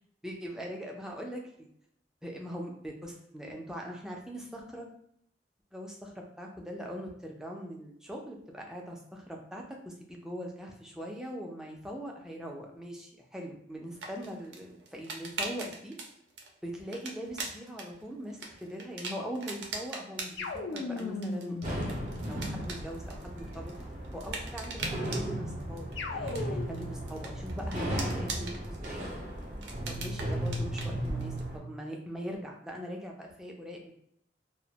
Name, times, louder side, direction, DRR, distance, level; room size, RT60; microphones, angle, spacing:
voice 1, 0.2-1.7 2.2-4.9 5.7-15.9 16.6-20.5 20.7-22.0 22.3-23.7 24.1-29.1 29.9-33.9, equal, 5° right, 0 dB, 0.3 m, -41 dB
sound 1, 13.9-31.5, right 3 dB, 80° right, 0.4 m, -43 dB
sound 2, 20.4-22.9 26.0-27.0, left 3 dB, 80° left, 0.4 m, -37 dB
sound 3, 21.6-31.6, right 1 dB, 45° right, 0.7 m, -36 dB
2.1 x 2.0 x 2.7 m, 0.72 s
head